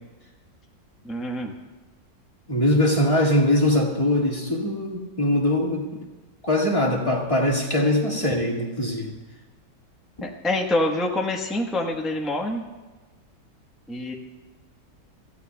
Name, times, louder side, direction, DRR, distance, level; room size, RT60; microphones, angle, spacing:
voice 1, 1.0-1.5 10.2-12.6 13.9-14.1, left 1 dB, ahead, 0 dB, 0.9 m, -26 dB
voice 2, 2.5-6.0 6.4-9.1, left 1 dB, 20° left, -2 dB, 1.9 m, -22 dB
26.0 x 15.0 x 2.3 m, 1.2 s
omnidirectional pair, 1.9 m